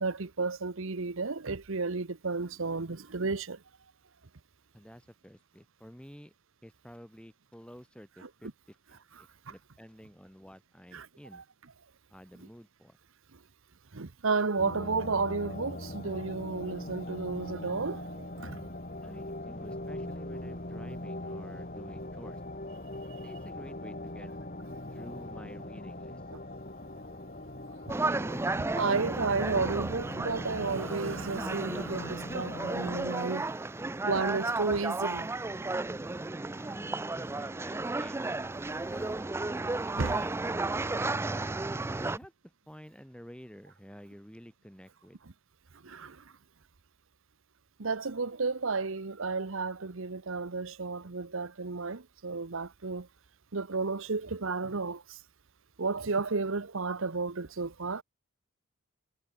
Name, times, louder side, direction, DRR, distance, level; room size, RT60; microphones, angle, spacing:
voice 1, 0.0-3.6 8.2-8.3 10.9-11.1 11.3-11.4 13.9-18.6 28.8-33.4 34.0-35.3 40.0-40.1 45.8-46.1 47.8-53.1 53.5-55.0 55.8-58.0, right 4 dB, 60° right, 1.0 m, -32 dB
voice 2, 4.7-6.3 6.6-11.4 12.1-13.0 19.0-22.4 23.2-24.3 24.9-26.2 36.0-38.2 38.9-41.4 41.9-45.2, equal, 5° left, 3.3 m, -50 dB
sound 1, 14.6-33.1, left 1 dB, 40° left, 4.6 m, -41 dB
sound 2, 27.9-42.2, right 2 dB, 10° right, 0.3 m, -33 dB
head